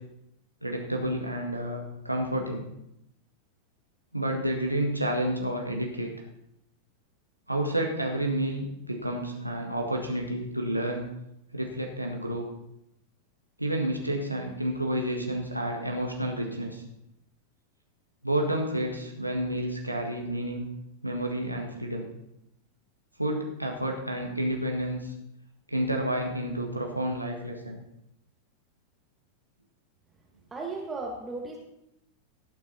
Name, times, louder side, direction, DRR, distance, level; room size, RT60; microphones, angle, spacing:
voice 1, 0.6-2.7 4.1-6.1 7.5-11.1 11.5-12.5 13.6-16.8 18.2-20.7 21.0-22.1 23.2-25.1 25.7-27.8, right 1 dB, 90° right, 1 dB, 1.7 m, -30 dB
voice 2, 30.5-31.6, right 3 dB, 15° right, -1 dB, 1.8 m, -35 dB
17.0 x 8.0 x 4.2 m, 0.83 s
figure-of-eight pair, 90°, 0 cm